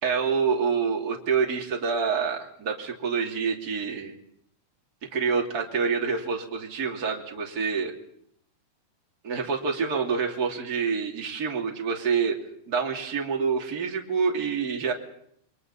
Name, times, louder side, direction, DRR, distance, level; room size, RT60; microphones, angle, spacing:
voice 1, 0.0-4.1 5.1-7.9 9.2-12.4 12.7-14.9, right 5 dB, 25° right, 0 dB, 2.7 m, -27 dB
30.0 x 22.5 x 5.6 m, 0.70 s
omnidirectional pair, 4.8 m